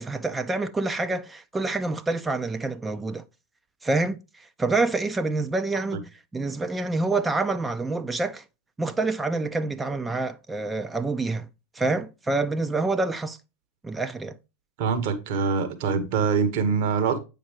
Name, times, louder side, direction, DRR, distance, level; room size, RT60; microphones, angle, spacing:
voice 1, 0.0-3.2 3.8-8.4 8.8-11.5 11.7-13.4 13.8-14.4, right 3 dB, 10° right, 0.4 m, -27 dB
voice 2, 14.8-17.2, right 5 dB, 50° right, 1.1 m, -24 dB
8.4 x 5.2 x 2.9 m
figure-of-eight pair, 90°, 0 cm